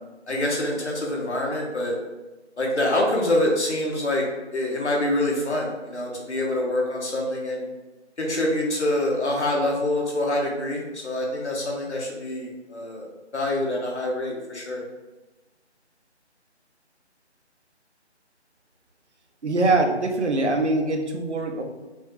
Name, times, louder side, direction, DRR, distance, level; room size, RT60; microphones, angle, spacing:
voice 1, 0.3-1.9 2.6-4.2 4.5-7.7 8.2-14.8, left 1 dB, 75° left, -1 dB, 1.4 m, -26 dB
voice 2, 19.4-21.6, right 2 dB, 75° right, 4 dB, 0.8 m, -23 dB
5.4 x 2.6 x 3.2 m, 1.1 s
figure-of-eight pair, 165°, 35 cm